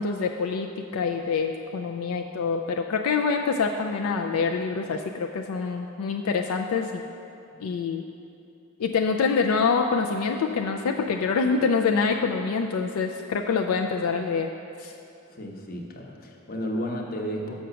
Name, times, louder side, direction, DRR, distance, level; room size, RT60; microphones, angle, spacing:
voice 1, 0.0-7.0 7.6-8.0 8.8-14.5 14.8-14.9, left 5 dB, 80° left, 3 dB, 0.4 m, -26 dB
voice 2, 15.3-17.7, equal, 45° left, 1 dB, 0.9 m, -33 dB
6.2 x 5.8 x 6.8 m, 2.7 s
head